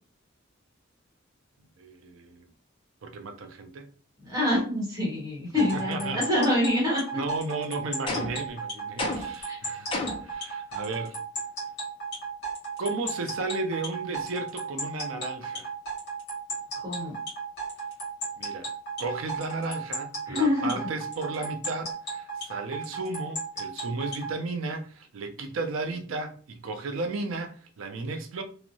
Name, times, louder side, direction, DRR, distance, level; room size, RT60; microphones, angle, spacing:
voice 1, 1.8-2.5 3.0-3.9 5.7-6.2 7.1-9.9 10.2-11.2 12.8-15.7 18.4-18.7 19.0-28.4, right 3 dB, 75° right, 0.5 m, -34 dB
voice 2, 4.2-7.2 9.5-9.6 16.8-17.1 20.3-20.7, left 1 dB, 20° right, 1.0 m, -26 dB
sound 1, 5.6-24.3, right 3 dB, 55° left, 1.2 m, -34 dB
sound 2, 8.1-8.5 9.0-9.4 9.9-10.3, left 3 dB, 25° left, 0.5 m, -31 dB
2.7 x 2.0 x 2.6 m
head